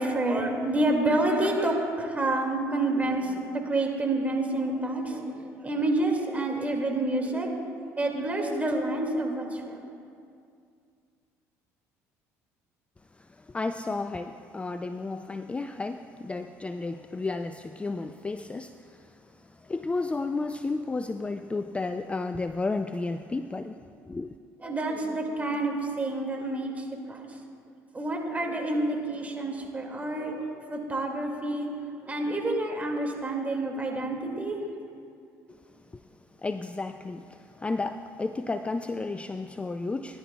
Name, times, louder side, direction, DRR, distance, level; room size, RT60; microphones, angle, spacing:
voice 1, 0.0-7.5 8.0-9.8 24.6-27.3 27.9-31.7 32.1-34.6, right 2 dB, 20° right, 1 dB, 2.1 m, -28 dB
voice 2, 13.1-24.4 35.5-35.6 35.9-36.0 36.4-40.2, left 3 dB, 15° left, 9 dB, 0.3 m, -33 dB
18.5 x 11.0 x 2.3 m, 2.3 s
hypercardioid pair, 70°, 7 cm